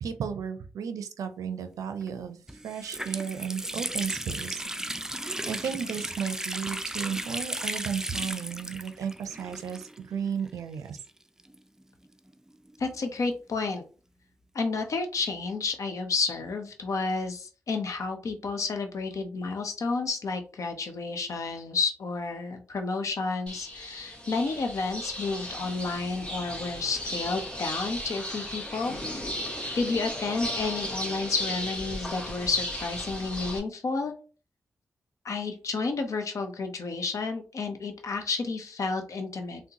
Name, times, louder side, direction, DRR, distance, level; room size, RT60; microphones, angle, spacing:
voice 1, 0.0-2.4 2.6-4.6 5.5-11.0, right 7 dB, 90° right, 9 dB, 0.4 m, -34 dB
Water tap faucet, 2.0-2.1 2.5-10.2 10.5-10.6 11.4-13.0, right 1 dB, 10° right, 0.3 m, -35 dB
voice 2, 12.8-13.8 14.5-29.2 29.8-34.1 35.2-39.6, left 4 dB, 70° left, 5 dB, 0.7 m, -31 dB
sound 1, 23.5-33.6, left 1 dB, 20° left, 1.2 m, -35 dB
3.7 x 2.1 x 2.8 m, 0.35 s
cardioid pair, 45°, 6 cm